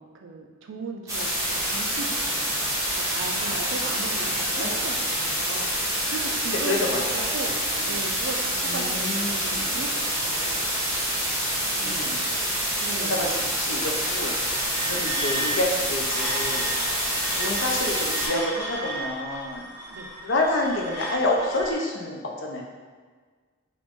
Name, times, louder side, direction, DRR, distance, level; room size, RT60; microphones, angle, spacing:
voice 1, 0.0-7.6 7.9-10.7 11.8-12.3 12.8-13.3 14.9-15.2 19.9-20.1, right 3 dB, 60° right, 2 dB, 0.4 m, -38 dB
sound 1, 1.1-18.3, equal, 15° right, 0.7 m, -27 dB
voice 2, 6.7-7.2 7.8-7.9 8.7-9.8 11.4-12.2 13.0-14.5 14.8-16.7 17.3-19.7 20.2-22.6, left 2 dB, 60° left, -1 dB, 0.5 m, -28 dB
sound 2, 14.0-21.7, right 1 dB, 15° left, 1.0 m, -35 dB
3.0 x 2.5 x 3.4 m, 1.5 s
head